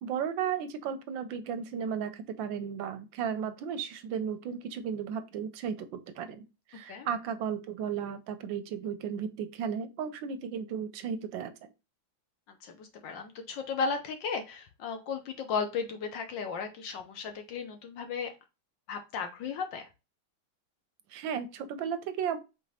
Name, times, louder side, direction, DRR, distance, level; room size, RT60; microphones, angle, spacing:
voice 1, 0.0-11.5 21.1-22.4, right 7 dB, 75° right, 11 dB, 1.2 m, -34 dB
voice 2, 12.6-18.3 18.9-19.9, left 5 dB, 70° left, 6 dB, 1.3 m, -35 dB
5.0 x 3.8 x 2.8 m, 0.27 s
omnidirectional pair, 2.3 m